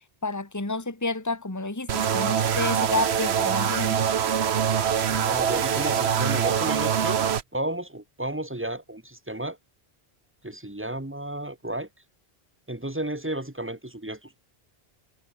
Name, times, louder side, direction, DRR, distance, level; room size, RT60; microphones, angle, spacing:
voice 1, 0.2-4.0, left 3 dB, 15° left, 1.9 m, -30 dB
sound 1, 1.9-7.4, right 8 dB, 80° right, 1.2 m, -24 dB
voice 2, 5.1-7.3 7.5-9.6 10.4-11.9 12.7-14.4, right 1 dB, 10° right, 1.4 m, -32 dB
omnidirectional pair, 1.1 m